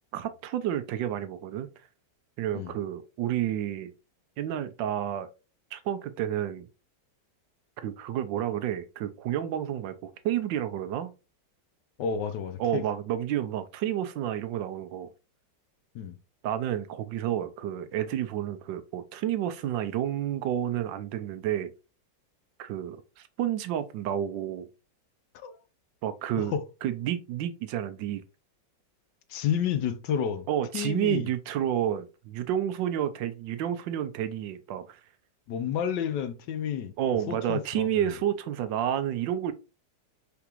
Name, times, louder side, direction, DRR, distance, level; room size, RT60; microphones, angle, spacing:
voice 1, 0.1-1.7 2.4-3.9 4.4-5.3 5.7-6.7 7.8-11.1 12.6-15.1 16.4-21.7 22.6-24.7 26.0-26.5 26.8-28.2 30.5-35.0 37.0-39.5, right 11 dB, 85° right, 1.3 m, -30 dB
voice 2, 12.0-12.8 15.9-16.1 25.3-25.5 26.4-26.6 29.3-30.5 30.7-31.3 35.5-36.9 37.3-38.1, left 8 dB, 75° left, 1.3 m, -30 dB
5.0 x 3.4 x 3.0 m
omnidirectional pair, 2.0 m